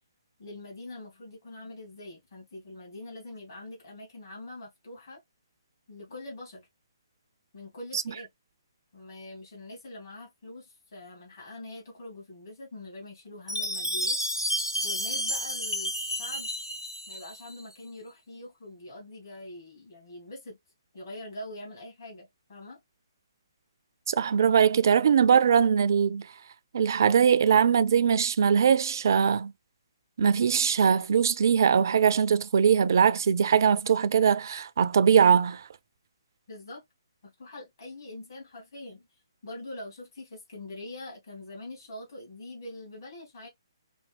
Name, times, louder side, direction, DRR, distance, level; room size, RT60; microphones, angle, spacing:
voice 1, 0.4-5.2 5.9-6.7 7.5-8.3 8.9-14.2 14.8-16.5 17.1-20.6 20.9-22.8 36.5-36.8 37.2-39.1 39.4-43.5, left 2 dB, 50° left, 2.2 m, -43 dB
Chime, 13.5-17.6, equal, 85° left, 1.1 m, -31 dB
voice 2, 24.1-26.2 26.7-29.5 30.2-35.6, right 7 dB, 50° right, 0.4 m, -21 dB
5.2 x 2.2 x 3.4 m
figure-of-eight pair, 130°, 2 cm